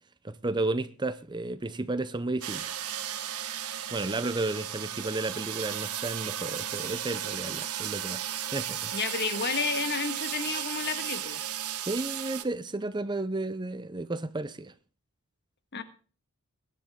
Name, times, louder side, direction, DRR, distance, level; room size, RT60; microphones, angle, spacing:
voice 1, 0.2-2.7 3.9-8.9 11.9-14.7, right 2 dB, 20° right, 0.6 m, -33 dB
sound 1, 2.4-12.4, right 10 dB, 90° right, 1.5 m, -35 dB
voice 2, 8.9-11.4 15.7-15.8, left 5 dB, 50° left, 1.6 m, -31 dB
21.5 x 10.5 x 3.7 m
head